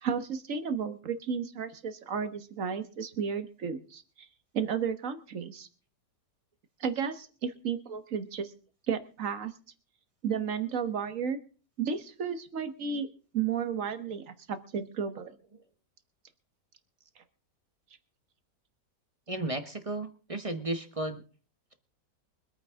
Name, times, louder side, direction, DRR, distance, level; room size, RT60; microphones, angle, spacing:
voice 1, 0.0-4.3 4.5-5.7 6.8-8.5 8.9-9.5 10.2-11.4 11.8-13.1 13.3-15.4, right 6 dB, 50° right, 9 dB, 1.5 m, -33 dB
voice 2, 19.3-21.2, right 2 dB, 25° right, 8 dB, 0.9 m, -34 dB
24.0 x 9.4 x 3.7 m, 0.39 s
omnidirectional pair, 1.8 m